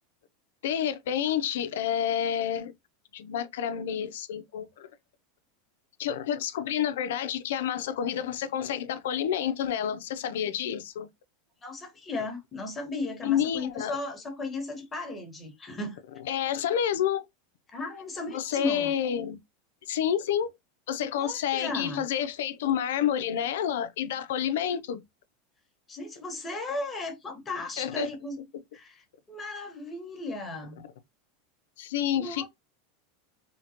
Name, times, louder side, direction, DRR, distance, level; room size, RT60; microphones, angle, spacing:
voice 1, 0.6-2.7 3.1-4.9 6.0-11.1 13.2-14.0 16.2-17.3 18.3-19.4 19.9-20.5 20.9-25.0 27.8-28.1 31.8-32.5, left 9 dB, 80° left, 0.4 m, -29 dB
voice 2, 11.6-16.0 17.7-18.9 21.2-22.0 25.9-28.4 28.7-30.8 32.1-32.5, left 2 dB, 20° left, 1.3 m, -36 dB
3.8 x 2.1 x 2.9 m
supercardioid pair, 130°, 0 cm